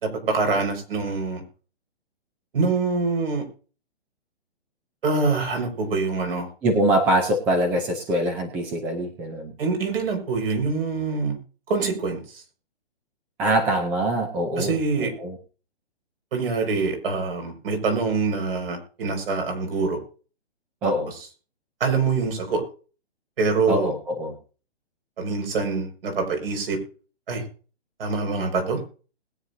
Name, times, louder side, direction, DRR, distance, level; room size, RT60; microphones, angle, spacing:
voice 1, 0.0-1.4 2.5-3.4 5.0-6.5 9.6-11.4 11.7-12.2 14.6-15.1 16.3-20.0 20.8-20.9 21.8-22.6 23.4-23.9 25.2-26.8 27.3-27.4 28.0-28.8, right 4 dB, 55° right, 4 dB, 5.2 m, -25 dB
voice 2, 6.6-9.5 13.4-15.4 20.8-21.1 23.7-24.3, right 1 dB, 5° right, 5 dB, 0.5 m, -24 dB
21.0 x 9.2 x 2.6 m, 0.37 s
hypercardioid pair, 160°, 33 cm